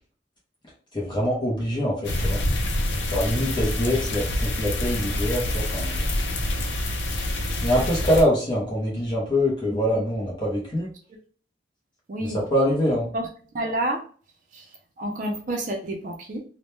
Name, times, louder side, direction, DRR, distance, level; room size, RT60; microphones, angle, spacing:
voice 1, 0.9-2.4 3.1-6.0 7.6-10.9 12.2-13.1, equal, 25° left, -4 dB, 0.6 m, -24 dB
sound 1, 2.0-8.2, left 1 dB, 80° left, 0.5 m, -26 dB
voice 2, 9.6-10.0 12.1-12.4 13.1-13.2 13.5-14.0 14.5-16.4, right 1 dB, 45° right, 1 dB, 0.4 m, -30 dB
2.1 x 2.1 x 2.9 m, 0.43 s
head